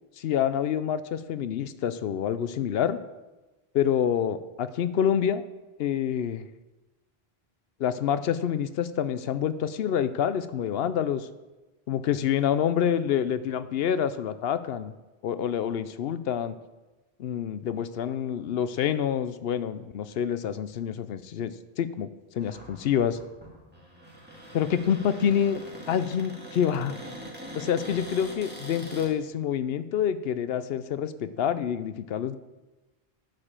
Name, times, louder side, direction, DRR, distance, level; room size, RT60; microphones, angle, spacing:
voice 1, 0.2-3.0 3.7-5.4 5.8-6.4 7.8-11.3 11.9-14.9 15.2-16.5 17.2-21.5 21.8-22.1 22.3-23.2 24.5-27.0 27.5-32.4, left 9 dB, 75° left, 13 dB, 0.8 m, -27 dB
Cupboard open or close, 22.4-29.1, equal, 10° right, 2.0 m, -43 dB
10.5 x 5.1 x 7.3 m, 1.1 s
omnidirectional pair, 1.0 m